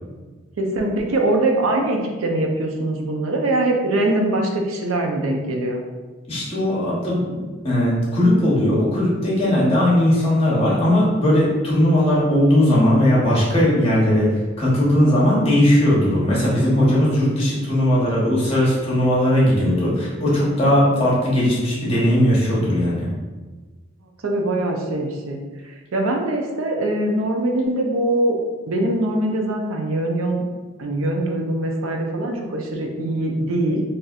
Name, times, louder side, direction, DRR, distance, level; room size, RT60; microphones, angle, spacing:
voice 1, 0.6-5.8 24.2-28.4 28.7-30.4 30.8-33.8, right 1 dB, 90° right, 1 dB, 0.5 m, -22 dB
voice 2, 6.3-23.1, left 1 dB, 30° left, -6 dB, 0.9 m, -18 dB
4.1 x 2.5 x 2.4 m, 1.3 s
head